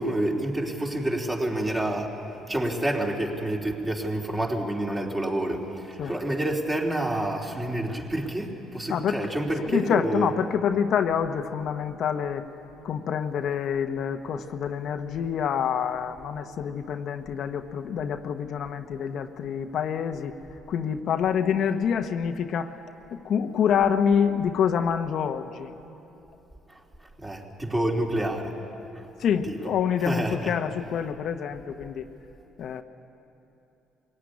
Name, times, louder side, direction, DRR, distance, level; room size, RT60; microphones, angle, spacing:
voice 1, 0.0-2.2 2.5-10.3 26.7-26.8 27.2-28.5 29.4-29.6 30.0-30.6, right 1 dB, 20° right, 0 dB, 3.3 m, -28 dB
voice 2, 8.9-9.2 9.6-12.4 12.8-20.3 20.7-22.7 23.1-25.7 29.2-32.1 32.6-32.8, left 7 dB, 60° left, 6 dB, 1.0 m, -26 dB
22.5 x 16.5 x 9.7 m, 2.9 s
supercardioid pair, 85°, 0 cm